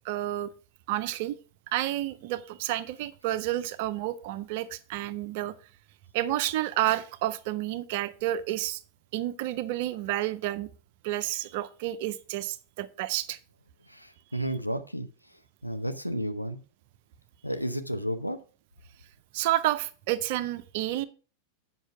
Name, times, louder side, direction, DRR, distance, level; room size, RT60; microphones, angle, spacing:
voice 1, 0.0-0.5 0.9-1.4 1.7-5.5 6.1-8.8 9.1-10.7 11.0-13.4 19.3-21.0, right 14 dB, 50° right, 15 dB, 0.6 m, -30 dB
voice 2, 13.9-15.1 15.6-16.6 17.4-18.4, equal, 90° left, 9 dB, 0.7 m, -32 dB
8.2 x 5.5 x 5.7 m, 0.37 s
figure-of-eight pair, 90°, 0 cm